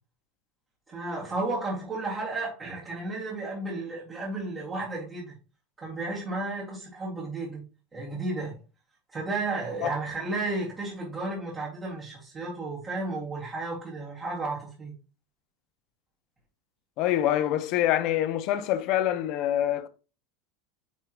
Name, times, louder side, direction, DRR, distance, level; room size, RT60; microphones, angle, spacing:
voice 1, 0.9-5.3 5.8-7.6 7.9-8.6 9.1-14.9, right 2 dB, 15° right, 2.2 m, -33 dB
voice 2, 17.0-19.9, left 12 dB, 40° left, 0.7 m, -25 dB
9.3 x 3.7 x 3.0 m
supercardioid pair, 170°, 0 cm